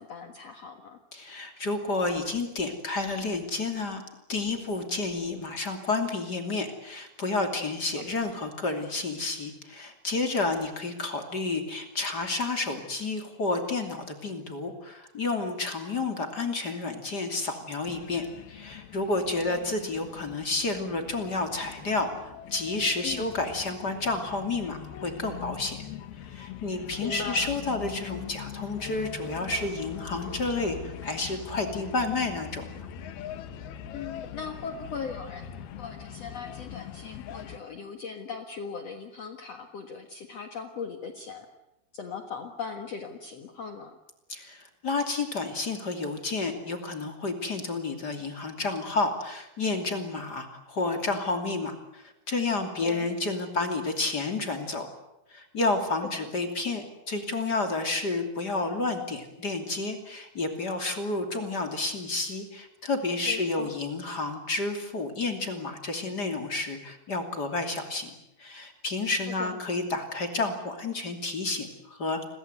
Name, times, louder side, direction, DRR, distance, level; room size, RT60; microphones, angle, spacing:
voice 1, 0.0-1.0 19.5-19.6 23.0-23.2 27.0-27.5 33.9-35.5 35.8-41.5 41.9-44.0 52.8-53.1 56.1-56.3 63.2-63.7 69.4-69.6, left 5 dB, 85° left, 6 dB, 1.4 m, -39 dB
voice 2, 1.1-4.0 4.3-22.1 22.5-25.8 26.3-32.7 44.3-54.9 55.3-68.1 68.4-72.2, left 3 dB, 30° left, 6 dB, 2.3 m, -30 dB
sound 1, 17.8-37.6, left 9 dB, 65° left, 2.8 m, -42 dB
30.0 x 22.5 x 8.1 m, 0.88 s
omnidirectional pair, 5.6 m